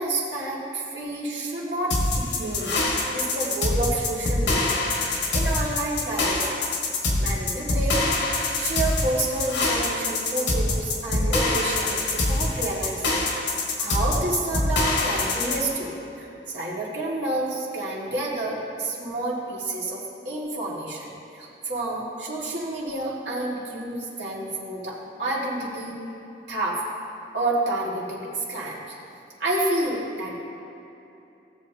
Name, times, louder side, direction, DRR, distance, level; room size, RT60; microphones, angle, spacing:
voice 1, 0.0-2.8 3.1-6.5 7.2-8.1 8.6-13.3 13.8-26.0 26.5-26.8 27.3-28.8 29.4-30.3, right 2 dB, 85° right, -5 dB, 2.1 m, -29 dB
sound 1, 1.9-15.6, left 2 dB, 85° left, 1.6 m, -24 dB
16.5 x 7.5 x 2.9 m, 2.9 s
head